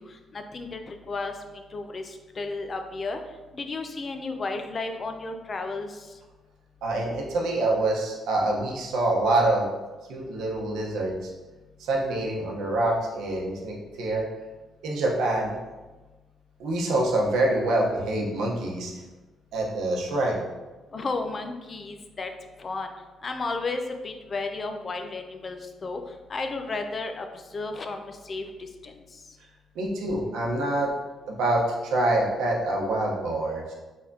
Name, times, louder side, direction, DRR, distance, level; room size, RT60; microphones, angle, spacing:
voice 1, 0.0-3.2 3.5-6.1 20.9-22.3 22.6-22.9 23.2-26.0 26.3-27.3 27.5-28.9, left 3 dB, 40° left, 6 dB, 0.5 m, -33 dB
voice 2, 6.8-9.7 10.1-11.3 11.8-14.2 14.8-15.5 16.6-18.9 19.5-20.4 29.7-30.9 31.3-33.7, right 2 dB, 85° right, -1 dB, 0.9 m, -26 dB
4.4 x 3.5 x 2.7 m, 1.2 s
cardioid pair, 90°, 0 cm